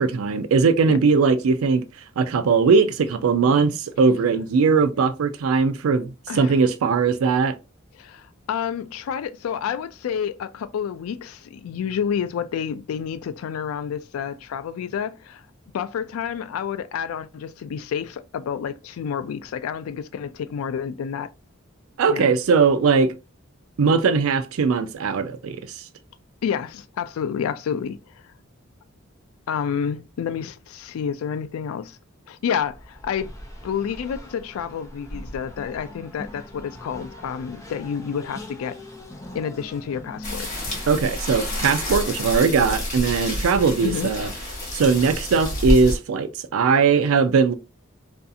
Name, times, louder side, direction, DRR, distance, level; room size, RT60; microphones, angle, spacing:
voice 1, 0.0-1.8 2.2-7.5 22.0-23.1 23.8-25.8 40.9-44.3 44.7-47.5, right 5 dB, 80° right, 0.4 m, -20 dB
voice 2, 8.0-15.4 15.7-21.3 22.1-22.3 26.4-28.2 29.5-32.0 32.3-33.3 33.6-38.8 39.3-40.5 43.8-44.1, left 7 dB, 90° left, 0.3 m, -29 dB
Race car auto racing, 32.7-42.2, left 1 dB, 15° left, 0.6 m, -42 dB
sound 1, 40.2-46.0, left 1 dB, 40° left, 1.3 m, -28 dB
2.6 x 2.3 x 2.5 m
head